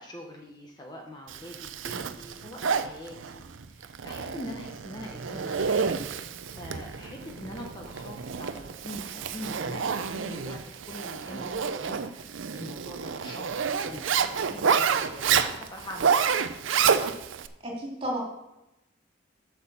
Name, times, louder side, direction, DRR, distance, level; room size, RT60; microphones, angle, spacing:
voice 1, 0.0-5.8 6.1-16.5, equal, 20° left, 1 dB, 1.0 m, -43 dB
Zipper (clothing), 1.3-17.5, right 6 dB, 80° right, 0.6 m, -29 dB
voice 2, 17.6-18.2, equal, 30° right, -2 dB, 2.9 m, -32 dB
8.5 x 5.9 x 7.0 m, 0.95 s
head